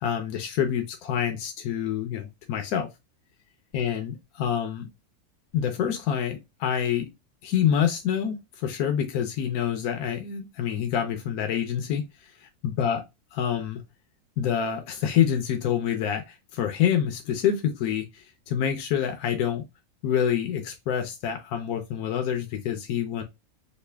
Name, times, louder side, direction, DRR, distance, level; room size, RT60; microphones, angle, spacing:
voice 1, 0.0-2.9 3.7-4.9 5.5-7.1 7.4-12.1 12.4-13.0 13.3-13.8 14.4-19.6 20.0-23.2, left 9 dB, 75° left, 1.2 m, -27 dB
3.3 x 2.5 x 3.3 m
omnidirectional pair, 1.6 m